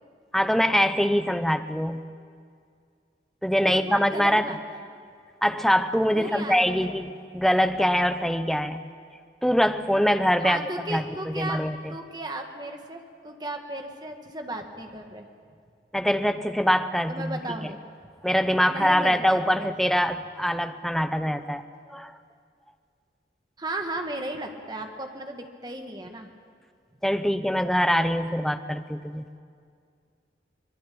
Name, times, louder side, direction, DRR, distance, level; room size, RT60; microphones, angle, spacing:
voice 1, 0.3-2.0 3.4-4.6 5.4-8.8 9.4-10.6 10.9-11.9 15.9-17.7 18.2-21.6 21.9-22.2 27.0-29.4, equal, ahead, 9 dB, 0.8 m, -24 dB
voice 2, 3.6-4.8 6.1-7.0 10.4-11.6 11.9-15.3 17.1-17.8 18.7-19.7 23.6-26.3, right 1 dB, 25° right, 4 dB, 2.0 m, -35 dB
24.5 x 21.0 x 8.7 m, 2.2 s
head